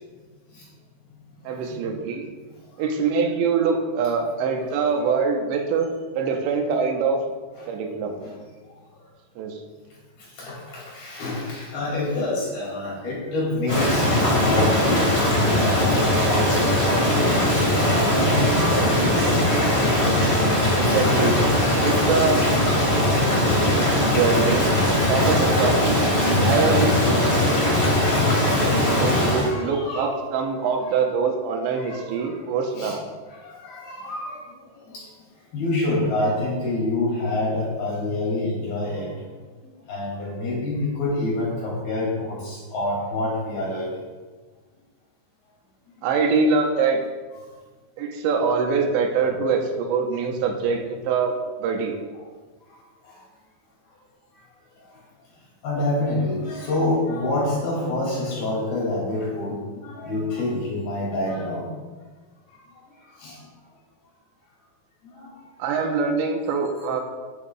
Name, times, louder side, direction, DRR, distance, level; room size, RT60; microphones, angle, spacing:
voice 1, 1.4-2.3 2.8-5.9 6.1-7.2 7.7-8.2 9.4-9.6 20.7-21.4 21.8-22.5 23.3-24.7 25.1-26.0 26.4-27.3 28.9-33.0 46.0-47.0 48.0-52.0 65.6-67.0, right 5 dB, 90° right, 3 dB, 3.2 m, -24 dB
voice 2, 10.3-17.3 17.9-19.7 22.3-22.4 24.1-24.2 29.3-30.5 31.7-32.4 32.7-33.0 33.3-34.4 34.8-35.0 35.5-39.2 39.6-43.9 49.2-49.4 52.7-52.8 53.0-53.2 55.6-61.7 63.2-63.4 65.1-65.3, left 2 dB, 60° left, -6 dB, 4.5 m, -27 dB
Rain, 13.7-29.5, left 1 dB, 40° left, 0.9 m, -20 dB
15.0 x 7.2 x 2.4 m, 1.4 s
omnidirectional pair, 5.1 m